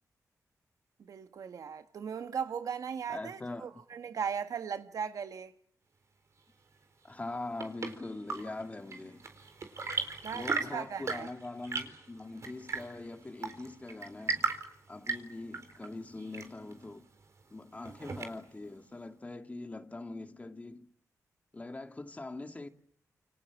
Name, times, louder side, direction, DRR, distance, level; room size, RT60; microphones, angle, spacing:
voice 1, 1.0-5.5 10.2-11.3, right 7 dB, 75° right, 1.6 m, -38 dB
voice 2, 3.1-3.7 7.0-9.2 10.3-14.5 14.9-17.1 17.5-20.9 21.5-22.7, left 2 dB, 25° left, 2.4 m, -42 dB
Chirp tweet / Engine / Tap, 7.1-18.7, right 4 dB, 55° right, 4.2 m, -38 dB
29.0 x 26.0 x 7.2 m
cardioid pair, 90°, 6 cm